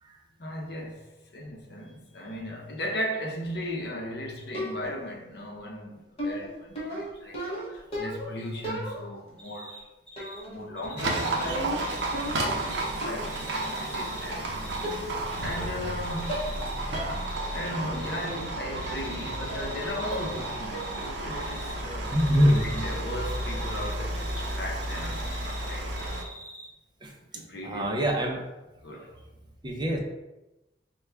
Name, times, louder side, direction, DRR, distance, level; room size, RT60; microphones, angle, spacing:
voice 1, 0.4-9.9 10.2-12.1 12.4-14.7 15.4-16.4 17.5-22.2 22.6-26.2 27.3-28.0 28.8-29.2, left 1 dB, 65° left, 0.7 m, -37 dB
sound 1, 4.5-5.1 6.2-8.3 8.6-9.3 10.2-10.6 10.8-12.6 13.0-13.4 14.3-14.4 14.8-15.3 15.6-16.0 16.3-16.6 16.9-17.2 17.6-17.7 18.9-19.1 19.5-19.8 20.1-20.4 20.7-21.1 21.4-21.7, equal, 35° left, 1.0 m, -35 dB
Cricket, 9.4-9.8 10.1-10.4 10.8-12.9 13.2-14.9 15.3-15.6 16.0-16.8 17.1-18.5 18.7-21.1 21.3-21.7 22.0-24.5 24.8-26.6, equal, 5° left, 1.0 m, -44 dB
Livestock farm animals working animals, 11.0-26.2, right 1 dB, 70° right, 0.6 m, -32 dB
voice 2, 22.1-22.7 27.0-27.1 27.6-28.5 29.6-30.0, equal, 25° right, 0.5 m, -24 dB
4.5 x 2.2 x 3.3 m
head